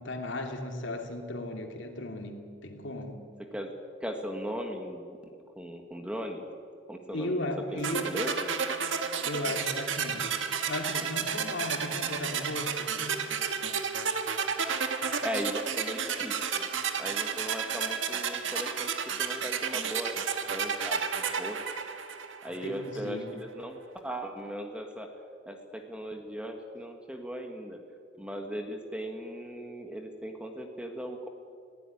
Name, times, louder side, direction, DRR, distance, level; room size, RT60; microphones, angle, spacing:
voice 1, 0.0-3.2 7.1-8.2 9.2-10.4 10.7-13.2 22.6-23.3, left 1 dB, 70° left, 4 dB, 2.7 m, -36 dB
voice 2, 4.0-5.2 5.6-6.5 6.9-8.3 15.2-16.7 17.0-20.2 20.5-21.6 22.4-25.1 25.5-27.8 28.2-31.3, equal, 5° right, 4 dB, 1.7 m, -38 dB
sound 1, 7.8-22.7, right 6 dB, 75° right, 1.6 m, -32 dB
19.5 x 16.5 x 10.0 m, 2.3 s
head